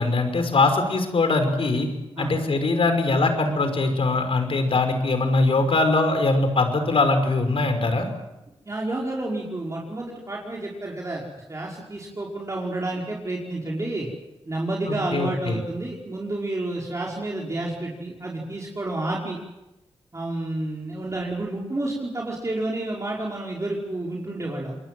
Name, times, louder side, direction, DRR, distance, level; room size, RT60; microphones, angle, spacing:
voice 1, 0.0-1.9 2.2-8.1 14.9-15.6, left 3 dB, 65° left, 7 dB, 5.4 m, -22 dB
voice 2, 8.6-11.2 11.5-14.1 14.5-19.4 20.1-24.8, right 2 dB, 30° right, -3 dB, 5.1 m, -30 dB
28.0 x 22.0 x 7.8 m, 0.99 s
cardioid pair, 60°, 10 cm